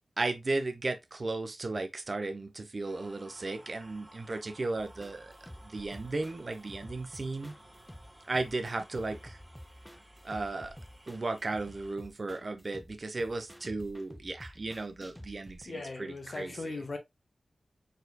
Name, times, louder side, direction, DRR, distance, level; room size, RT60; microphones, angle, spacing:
voice 1, 0.2-5.3 5.6-7.5 8.3-9.4 10.2-10.7 11.1-16.7, right 3 dB, 50° right, 0.9 m, -35 dB
sound 1, 2.8-12.0, right 1 dB, 20° right, 2.0 m, -57 dB
sound 2, 4.8-15.7, equal, 5° left, 0.6 m, -51 dB
voice 2, 15.6-17.0, left 3 dB, 55° left, 1.2 m, -38 dB
4.4 x 4.1 x 2.3 m
cardioid pair, 50°, 0 cm